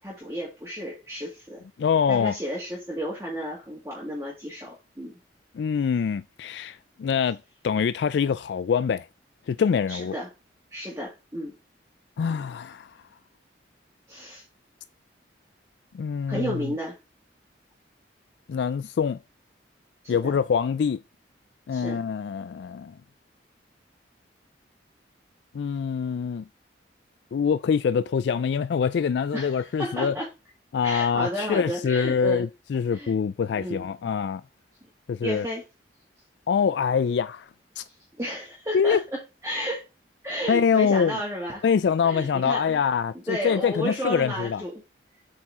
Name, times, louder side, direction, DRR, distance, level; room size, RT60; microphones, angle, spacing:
voice 1, 0.0-1.6 2.1-5.2 9.9-10.3 10.7-11.5 14.1-14.4 16.3-17.0 20.0-20.3 21.7-22.0 29.3-30.3 30.8-32.5 32.9-33.1 33.6-33.8 35.2-35.6 38.2-39.8 40.2-41.6 42.0-42.8 43.3-44.8, equal, 15° right, 2.1 m, -32 dB
voice 2, 1.8-2.4 5.5-7.4 7.6-9.1 9.5-10.2 12.2-13.0 15.9-16.7 18.5-19.2 20.1-21.0 21.7-22.9 25.5-26.4 27.3-30.1 30.7-34.4 35.1-35.5 36.5-37.5 37.8-37.9 38.7-39.0 40.5-41.2 41.6-44.6, left 6 dB, 65° left, 0.3 m, -24 dB
8.2 x 4.4 x 3.7 m
head